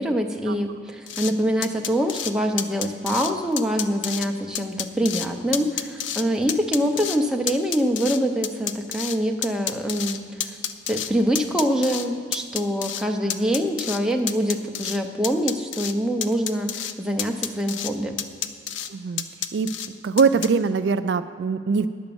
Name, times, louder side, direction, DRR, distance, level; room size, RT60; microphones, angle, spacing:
voice 1, 0.0-10.6 10.9-18.2, equal, 5° right, 2 dB, 0.6 m, -24 dB
sound 1, 1.1-1.3 1.6-2.3 2.6-3.3 3.6-4.3 4.5-5.3 5.5-6.2 6.5-7.2 7.5-9.2 9.4-11.1 11.3-12.1 12.3-13.0 13.3-14.0 14.3-15.0 15.2-15.9 16.2-16.9 17.2-17.9 18.2-18.9 19.2-19.9 20.2-20.5, left 9 dB, 75° left, 0.5 m, -29 dB
voice 2, 18.9-19.2 19.5-19.7 20.0-21.9, right 5 dB, 60° right, 11 dB, 0.3 m, -22 dB
10.0 x 6.9 x 7.0 m, 2.2 s
head